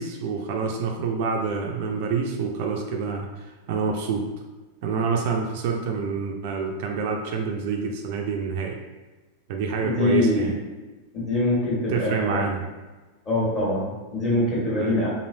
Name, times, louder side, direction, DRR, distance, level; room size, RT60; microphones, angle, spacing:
voice 1, 0.0-4.2 4.8-8.8 9.5-10.5 11.9-12.6 14.8-15.0, right 5 dB, 50° right, 2 dB, 0.3 m, -27 dB
voice 2, 9.8-10.5 11.1-12.4 13.2-15.1, left 1 dB, 25° left, -7 dB, 1.4 m, -24 dB
3.0 x 2.6 x 2.6 m, 1.2 s
figure-of-eight pair, 90°, 0 cm